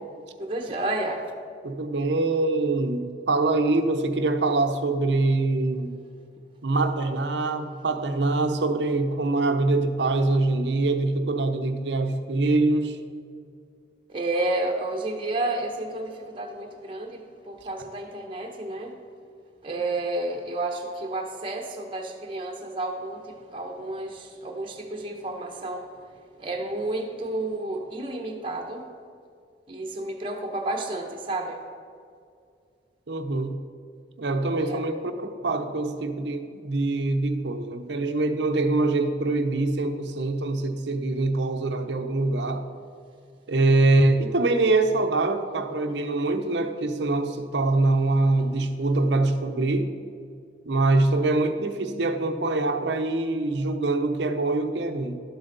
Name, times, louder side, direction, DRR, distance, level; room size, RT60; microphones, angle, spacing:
voice 1, 0.4-1.2 14.1-19.0 19.6-25.9 26.4-28.9 29.7-31.6 34.6-34.8, right 2 dB, 30° right, 1 dB, 0.9 m, -31 dB
voice 2, 1.6-6.0 6.6-13.0 33.1-33.6 34.2-42.6 43.5-49.9 50.7-55.2, right 2 dB, 70° right, 7 dB, 0.7 m, -24 dB
12.0 x 7.8 x 3.9 m, 2.3 s
head